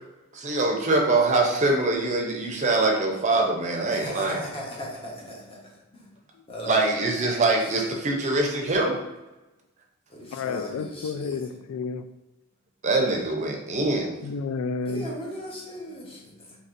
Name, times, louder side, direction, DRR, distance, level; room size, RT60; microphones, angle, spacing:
voice 1, 0.3-4.5 6.7-9.0 10.7-10.8 12.8-14.1, right 2 dB, 35° right, 1 dB, 0.6 m, -24 dB
voice 2, 3.9-5.6 5.9-6.0 6.5-7.5 10.1-11.4 14.9-16.6, equal, 25° left, -3 dB, 1.0 m, -37 dB
voice 3, 10.3-12.1 14.2-15.2, left 4 dB, 90° left, 13 dB, 0.3 m, -31 dB
4.2 x 2.9 x 2.5 m, 1.1 s
head